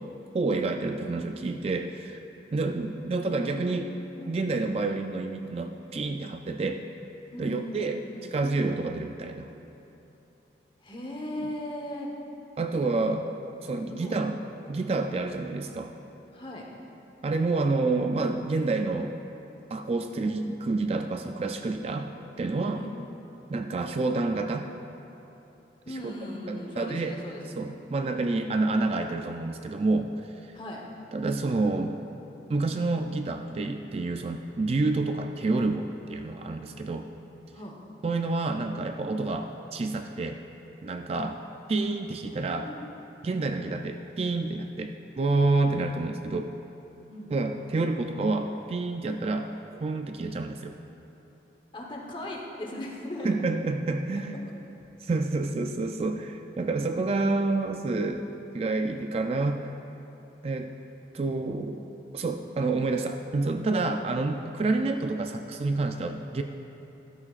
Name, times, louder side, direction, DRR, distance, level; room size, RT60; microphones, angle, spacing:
voice 1, 0.3-2.2 2.5-3.9 4.3-6.8 7.4-8.0 8.3-9.5 12.6-13.3 13.6-14.4 14.7-15.9 17.2-19.1 19.7-22.1 22.4-22.8 23.5-24.7 25.9-26.1 26.5-27.2 27.6-30.6 31.1-32.0 32.5-37.1 38.0-40.4 40.8-41.4 41.7-42.7 43.2-46.5 47.3-49.5 49.8-50.8 53.2-54.4 55.0-58.3 58.5-59.7 60.4-60.7 61.1-61.8 62.1-66.4, right 3 dB, 30° right, 6 dB, 0.3 m, -28 dB
voice 2, 3.2-4.4 7.3-8.2 10.8-12.1 12.8-12.9 13.9-14.2 16.3-16.6 22.7-22.9 25.9-27.6 30.5-30.8 37.5-37.8 42.4-42.8 47.1-47.3 51.7-53.4, left 1 dB, 25° left, -1 dB, 1.1 m, -38 dB
13.5 x 12.0 x 2.5 m, 3.0 s
head